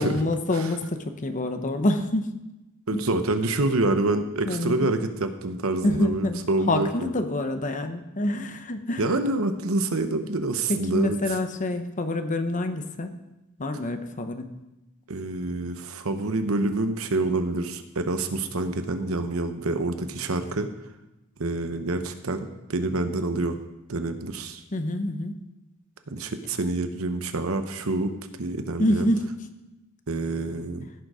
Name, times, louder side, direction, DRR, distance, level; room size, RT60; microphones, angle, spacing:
voice 1, 0.0-2.3 2.9-3.0 4.5-4.9 5.8-9.0 10.7-13.2 13.6-14.5 24.7-25.4 28.8-29.3, left 1 dB, 35° left, 8 dB, 0.9 m, -27 dB
voice 2, 2.9-7.1 9.0-11.2 15.1-20.7 21.4-23.6 23.9-24.6 26.1-28.1 28.4-29.1 30.1-30.9, right 2 dB, 70° right, 8 dB, 0.9 m, -27 dB
16.0 x 6.6 x 5.0 m, 0.98 s
head